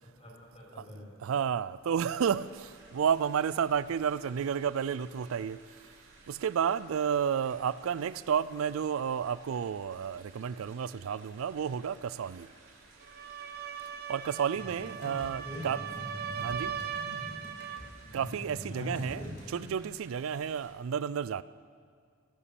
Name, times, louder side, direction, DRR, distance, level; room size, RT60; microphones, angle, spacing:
voice 1, 0.0-1.1 15.0-15.7 18.7-19.3, left 1 dB, 35° left, -3 dB, 4.6 m, -42 dB
voice 2, 1.2-5.6 6.3-12.5 14.1-15.8 16.4-16.7 18.1-19.2 19.5-21.4, right 7 dB, 90° right, 18 dB, 0.4 m, -31 dB
sound 1, 2.1-20.7, right 3 dB, 70° right, 2.9 m, -58 dB
sound 2, 13.0-17.9, right 8 dB, 50° right, 0.7 m, -39 dB
sound 3, 14.5-19.7, equal, 60° left, 3.2 m, -45 dB
18.5 x 7.1 x 7.0 m, 2.1 s
head